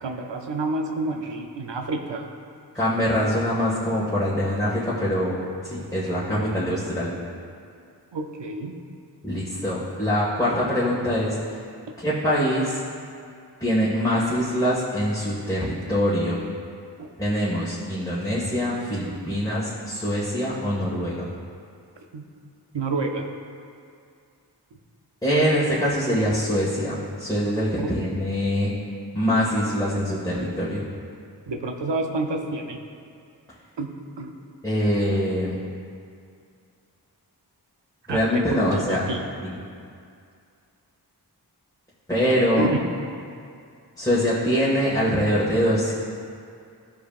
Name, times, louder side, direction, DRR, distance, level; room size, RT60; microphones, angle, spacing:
voice 1, 0.0-2.3 8.1-8.7 17.0-17.1 22.1-22.2 22.7-23.3 27.8-27.9 31.5-32.8 33.8-33.9 34.2-34.3 38.1-38.2 38.7-39.2 42.6-42.8, right 2 dB, 85° right, 3 dB, 0.8 m, -28 dB
voice 2, 2.7-7.2 9.2-11.6 12.0-12.8 13.6-16.4 17.2-21.3 25.2-28.7 29.1-30.9 34.6-35.5 38.1-39.1 39.4-39.6 42.1-42.7 44.0-45.9, equal, 10° left, -10 dB, 1.9 m, -24 dB
14.5 x 5.0 x 2.5 m, 2.3 s
cardioid pair, 45°, 42 cm